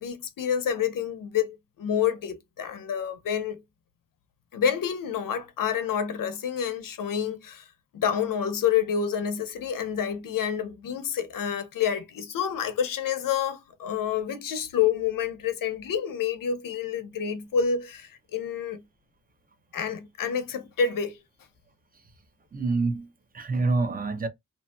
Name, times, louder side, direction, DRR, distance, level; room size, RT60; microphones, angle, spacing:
voice 1, 0.0-3.6 4.5-7.6 7.9-18.8 19.7-21.2, left 8 dB, 85° left, 0.7 m, -28 dB
voice 2, 22.5-24.3, right 3 dB, 30° right, 0.5 m, -27 dB
2.8 x 2.7 x 2.3 m
wide cardioid pair, 130°, 32 cm